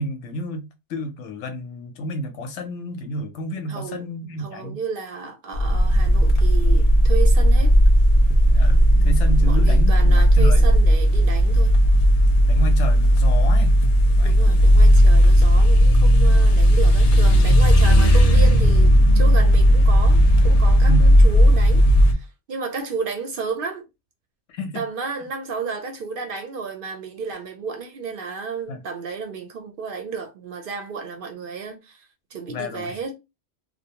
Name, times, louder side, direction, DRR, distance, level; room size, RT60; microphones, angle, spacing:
voice 1, 0.0-4.8 8.5-10.6 12.4-13.8 14.1-14.7 20.8-21.1 24.5-24.8 28.7-28.8 32.5-33.0, equal, 90° left, 0.9 m, -30 dB
voice 2, 3.7-4.1 4.4-7.7 8.9-11.7 14.2-23.9 24.7-33.1, right 5 dB, 60° right, 0.6 m, -32 dB
sound 1, 5.5-22.1, equal, 70° left, 0.3 m, -15 dB
2.5 x 2.1 x 2.8 m
omnidirectional pair, 1.2 m